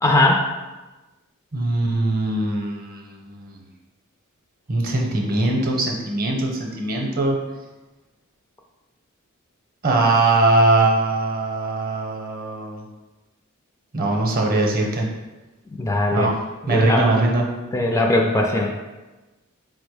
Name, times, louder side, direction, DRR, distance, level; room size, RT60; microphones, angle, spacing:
voice 1, 0.0-0.5 15.7-16.3 16.6-17.1 17.7-18.7, left 1 dB, 15° left, 1 dB, 0.3 m, -19 dB
voice 2, 1.5-3.6 4.7-7.4 9.8-12.8 13.9-15.1 16.1-16.3 16.7-17.4, right 2 dB, 45° right, 0 dB, 0.7 m, -21 dB
4.7 x 2.1 x 4.7 m, 1.1 s
head